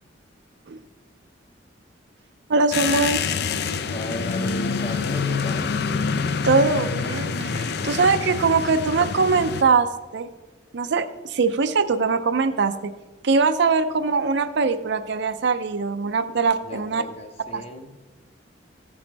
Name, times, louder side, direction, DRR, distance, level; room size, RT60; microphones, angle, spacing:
voice 1, 2.5-3.2 6.4-10.3 10.7-12.9 13.2-17.0 17.5-17.6, right 4 dB, 60° right, 11 dB, 0.5 m, -22 dB
sound 1, 2.7-9.6, left 5 dB, 55° left, 0.5 m, -26 dB
voice 2, 3.9-5.8 16.6-18.0, left 2 dB, 35° left, 6 dB, 0.8 m, -35 dB
14.0 x 6.8 x 3.3 m, 1.2 s
head